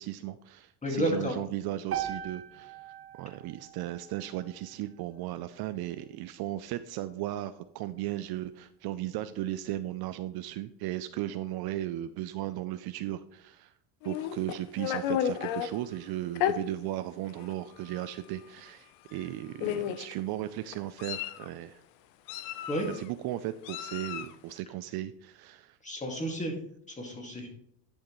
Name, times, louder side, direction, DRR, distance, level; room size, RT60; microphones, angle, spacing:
voice 1, 0.0-2.8 3.1-13.7 14.0-21.8 22.8-25.8, right 14 dB, 55° right, 11 dB, 0.5 m, -36 dB
voice 2, 0.8-1.3 22.7-22.9 25.8-26.5 26.9-27.5, equal, 15° left, 2 dB, 2.0 m, -31 dB
sound 1, 1.9-6.1, right 10 dB, 30° right, 0.9 m, -41 dB
Meow, 14.0-15.7 16.3-16.6 17.4-17.5 17.9-18.1 19.1-19.2 19.6-20.1 20.7-21.5 22.3-23.0 23.6-24.3, left 10 dB, 70° left, 0.8 m, -32 dB
10.5 x 6.5 x 3.1 m, 0.71 s
supercardioid pair, 110°, 47 cm